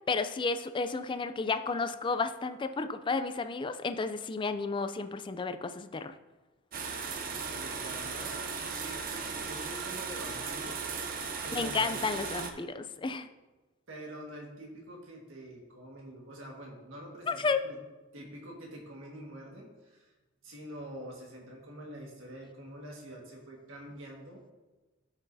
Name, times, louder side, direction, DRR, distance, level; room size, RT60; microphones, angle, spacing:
voice 1, 0.1-6.1 11.5-13.3 17.3-17.6, left 4 dB, 25° left, 10 dB, 0.4 m, -32 dB
sound 1, 6.7-12.5, right 5 dB, 45° right, 0.8 m, -37 dB
voice 2, 7.5-8.4 8.6-10.9 11.4-12.0 13.9-17.8 18.1-20.1 20.4-24.5, right 1 dB, 85° right, -1 dB, 1.7 m, -46 dB
12.5 x 6.1 x 2.7 m, 1.2 s
head